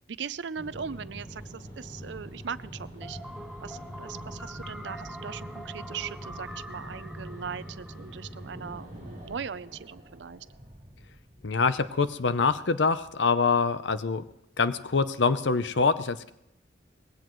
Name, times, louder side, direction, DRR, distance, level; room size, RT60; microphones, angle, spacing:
voice 1, 0.1-3.2 3.6-10.5, right 6 dB, 80° right, 16 dB, 0.5 m, -39 dB
sound 1, 0.6-9.4, equal, 30° left, 7.0 m, -43 dB
sound 2, 3.0-8.9, equal, ahead, 0.6 m, -45 dB
sound 3, 8.5-12.3, right 1 dB, 40° right, 2.2 m, -51 dB
voice 2, 11.4-14.2 14.6-16.3, left 4 dB, 85° left, 13 dB, 0.7 m, -25 dB
20.5 x 16.5 x 3.1 m, 0.82 s
head